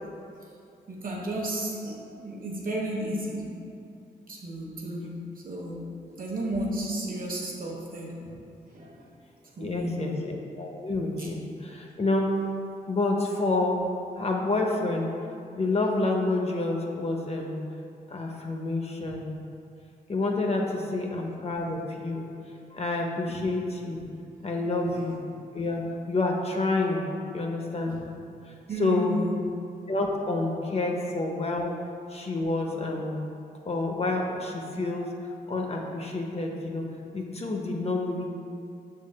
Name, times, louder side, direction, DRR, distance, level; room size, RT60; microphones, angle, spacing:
voice 1, 0.9-3.5 4.3-5.9 6.2-8.3 8.7-9.0 9.6-10.2 11.2-11.3 19.0-19.1 23.3-23.4 24.9-25.0 27.9-28.0 28.7-29.4 35.0-35.1, right 1 dB, 55° right, -3 dB, 1.0 m, -33 dB
voice 2, 9.6-12.3 12.9-13.8 14.2-15.1 15.6-17.6 18.1-19.3 20.1-22.3 22.7-24.0 24.4-25.2 25.5-25.8 26.1-27.1 27.3-28.0 28.5-28.6 28.8-29.1 29.9-31.7 32.1-33.3 33.7-35.1 35.5-36.9 37.1-38.3, left 2 dB, 35° left, 0 dB, 0.6 m, -28 dB
6.0 x 3.7 x 2.2 m, 2.6 s
cardioid pair, 50°, 17 cm